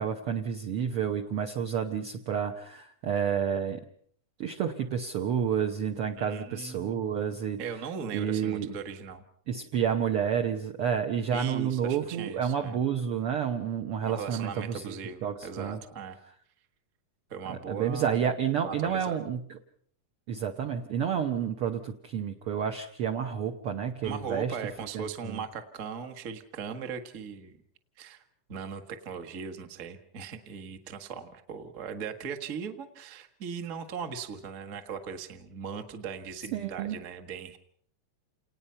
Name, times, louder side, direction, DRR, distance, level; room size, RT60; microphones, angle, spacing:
voice 1, 0.0-3.8 4.4-7.6 8.1-8.7 9.5-14.9 15.2-15.8 17.5-19.4 20.3-24.5 24.9-25.4 36.5-37.0, right 8 dB, 65° right, 4 dB, 1.4 m, -30 dB
voice 2, 6.2-7.0 7.6-9.2 11.3-12.8 14.0-16.2 17.3-18.2 18.6-19.2 24.0-27.6 28.0-28.2 28.5-37.6, right 6 dB, 45° right, 7 dB, 1.0 m, -39 dB
28.5 x 19.0 x 5.6 m, 0.62 s
omnidirectional pair, 3.7 m